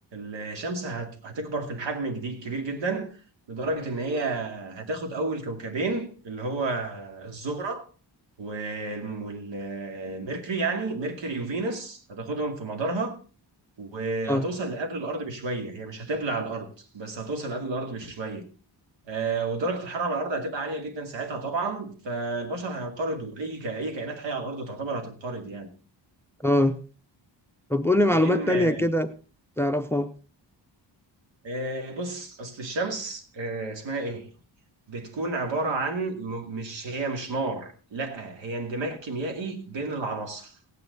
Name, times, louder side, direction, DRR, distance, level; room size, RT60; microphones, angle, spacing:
voice 1, 0.1-3.1 3.5-7.8 8.4-13.2 13.8-18.5 19.1-25.7 28.1-28.8 31.4-34.3 34.9-40.6, right 3 dB, 80° right, 2.5 m, -31 dB
voice 2, 26.4-26.8 27.7-29.1 29.6-30.1, left 1 dB, 5° left, 0.5 m, -22 dB
16.0 x 9.3 x 4.0 m
wide cardioid pair, 170°, 44 cm